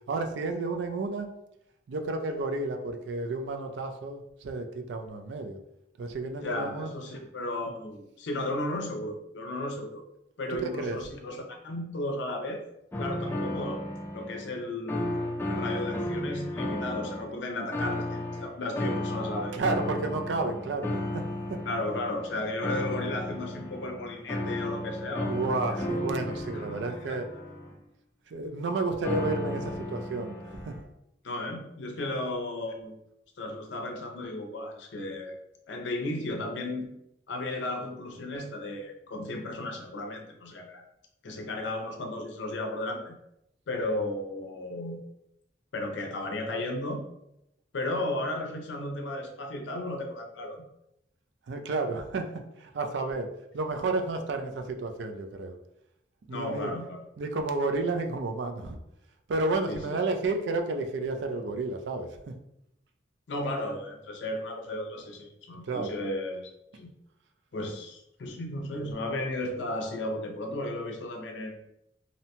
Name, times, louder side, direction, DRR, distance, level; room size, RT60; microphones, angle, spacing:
voice 1, 0.1-1.3 1.9-5.6 6.0-6.9 10.5-11.0 19.5-21.2 21.5-21.6 25.3-27.3 28.3-30.8 51.5-55.5 56.3-56.7 57.2-58.8 59.3-62.3 65.6-66.0, right 3 dB, 75° right, 6 dB, 0.4 m, -31 dB
voice 2, 6.4-10.0 10.4-12.6 13.0-13.8 14.1-15.1 15.5-19.6 21.7-25.4 26.5-27.2 31.2-33.0 33.4-35.3 35.7-37.0 37.3-40.8 41.2-43.1 43.7-45.0 45.7-47.0 47.7-50.6 56.3-57.0 59.7-60.0 63.3-66.9 67.5-71.6, left 1 dB, 75° left, 3 dB, 0.5 m, -34 dB
sound 1, 12.9-14.6 14.9-17.3 17.7-27.7 29.0-30.8, left 1 dB, 15° left, 0.4 m, -34 dB
2.7 x 2.1 x 2.8 m, 0.81 s
head